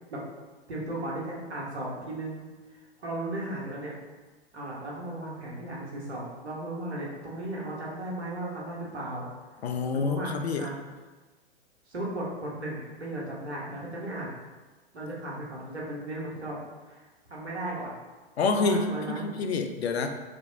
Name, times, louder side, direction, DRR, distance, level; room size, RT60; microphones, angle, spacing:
voice 1, 0.7-3.9 4.5-9.3 9.9-10.7 11.9-14.4 14.9-16.6 16.9-17.9 18.5-19.3, right 1 dB, 80° right, -4 dB, 1.1 m, -36 dB
voice 2, 9.6-10.7 18.4-20.1, left 4 dB, 75° left, 6 dB, 0.5 m, -27 dB
3.3 x 2.9 x 2.7 m, 1.3 s
figure-of-eight pair, 110°, 32 cm